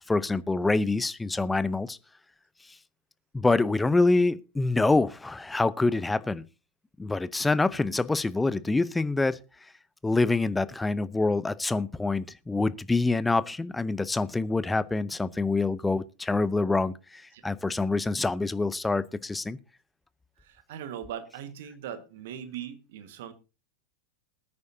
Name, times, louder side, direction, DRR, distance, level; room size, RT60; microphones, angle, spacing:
voice 1, 0.1-2.0 3.3-6.4 7.0-9.4 10.0-19.6, left 3 dB, 10° left, 0.6 m, -26 dB
voice 2, 20.4-23.3, right 9 dB, 55° right, 1.6 m, -40 dB
21.0 x 9.6 x 2.7 m
figure-of-eight pair, 90°, 0 cm